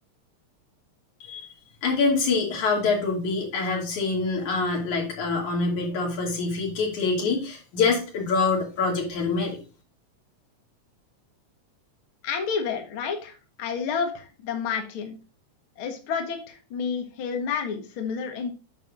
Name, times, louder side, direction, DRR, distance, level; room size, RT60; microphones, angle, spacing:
voice 1, 1.8-9.6, left 4 dB, 80° left, 0 dB, 4.1 m, -25 dB
voice 2, 12.2-15.2 15.8-18.5, left 6 dB, 50° left, 3 dB, 2.0 m, -30 dB
9.5 x 6.8 x 2.6 m, 0.33 s
omnidirectional pair, 3.4 m